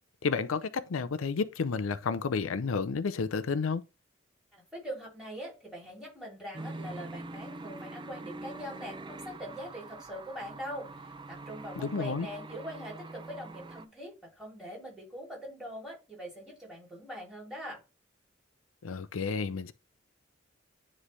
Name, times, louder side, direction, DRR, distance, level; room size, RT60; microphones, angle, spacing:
voice 1, 0.2-3.8 11.8-12.3 18.8-19.7, left 5 dB, 90° left, 0.5 m, -31 dB
voice 2, 4.5-17.8, equal, 5° right, 3.4 m, -43 dB
sound 1, 6.5-13.9, right 2 dB, 25° right, 0.5 m, -44 dB
9.7 x 3.3 x 3.3 m
head